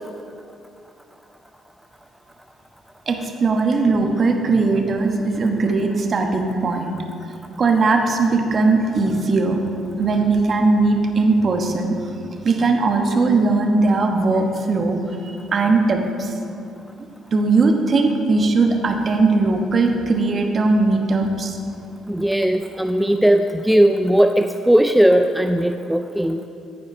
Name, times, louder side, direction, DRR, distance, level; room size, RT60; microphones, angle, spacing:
voice 1, 3.1-6.9 7.6-9.6 10.0-11.9 12.4-16.3 17.3-21.6, right 3 dB, 45° right, 3 dB, 1.1 m, -19 dB
voice 2, 22.1-26.4, right 1 dB, 5° right, 7 dB, 0.3 m, -17 dB
14.0 x 4.9 x 4.3 m, 2.6 s
hypercardioid pair, 60°, 0 cm